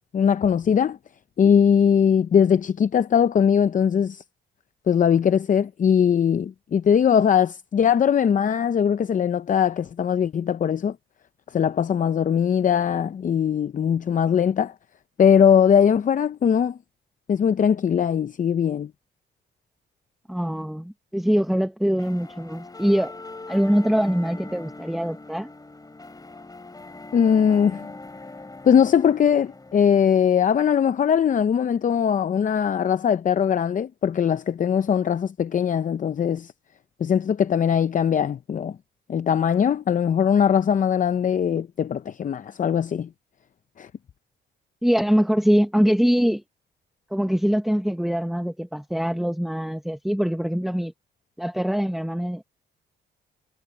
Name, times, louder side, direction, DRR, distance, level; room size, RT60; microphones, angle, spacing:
voice 1, 0.1-1.0 1.4-4.2 4.9-10.9 11.5-14.7 15.2-16.8 17.3-18.9 27.1-27.9 28.6-36.5 37.0-38.8 39.1-43.1 43.8-43.9, left 8 dB, 40° left, 0.7 m, -20 dB
voice 2, 20.3-23.1 23.5-25.5 44.8-46.4 47.1-50.9 51.4-52.4, equal, ahead, 1.0 m, -23 dB
sound 1, 22.0-30.0, left 2 dB, 20° left, 4.3 m, -41 dB
cardioid pair, 90°, 20 cm